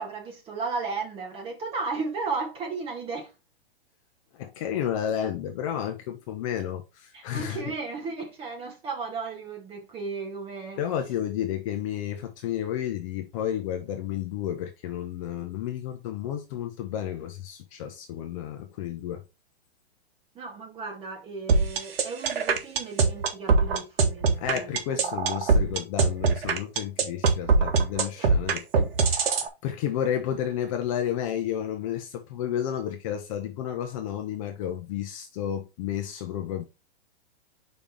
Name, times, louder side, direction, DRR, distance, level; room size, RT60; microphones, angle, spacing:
voice 1, 0.0-3.3 7.1-10.8 20.3-24.8 28.2-28.3, right 4 dB, 15° right, 1.6 m, -34 dB
voice 2, 4.3-7.7 10.8-19.2 24.4-36.6, left 10 dB, 30° left, 0.7 m, -31 dB
sound 1, 21.5-29.5, right 4 dB, 60° right, 1.6 m, -21 dB
5.2 x 3.5 x 5.6 m
hypercardioid pair, 155°, 32 cm